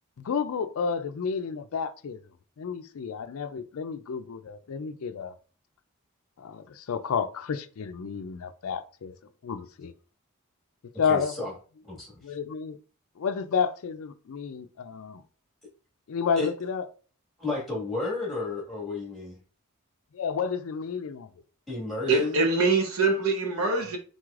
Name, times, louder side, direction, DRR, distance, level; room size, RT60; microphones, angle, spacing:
voice 1, 0.2-2.2 2.6-5.4 6.4-9.1 9.4-9.9 11.0-11.3 12.2-12.8 13.2-15.2 16.1-16.8 20.1-21.3 23.7-23.8, left 6 dB, 65° left, 0.4 m, -31 dB
voice 2, 11.1-11.5 11.8-12.4 16.4-16.5 17.4-19.4 21.7-22.4, left 3 dB, ahead, 1.7 m, -32 dB
voice 3, 22.1-24.0, right 3 dB, 65° right, 1.0 m, -24 dB
4.7 x 4.1 x 2.4 m
head